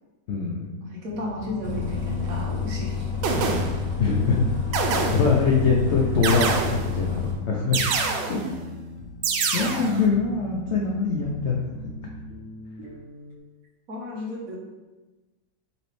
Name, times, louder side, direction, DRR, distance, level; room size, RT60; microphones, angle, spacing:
voice 1, 0.3-0.7 4.0-4.4 5.1-7.8 8.3-8.4 9.5-11.7, left 4 dB, 70° left, -2 dB, 0.6 m, -23 dB
voice 2, 0.8-3.1 8.4-8.5 13.9-14.6, left 1 dB, 60° right, -3 dB, 1.1 m, -33 dB
sound 1, 1.1-13.4, left 2 dB, 85° left, 1.3 m, -41 dB
Bus, 1.6-7.3, left 6 dB, 10° right, 0.6 m, -29 dB
sound 2, 2.2-2.4 3.2-4.0 4.7-5.5 6.2-7.1 7.7-8.6 9.2-10.1, right 5 dB, 90° right, 1.3 m, -26 dB
5.4 x 3.1 x 3.2 m, 1.2 s
omnidirectional pair, 1.9 m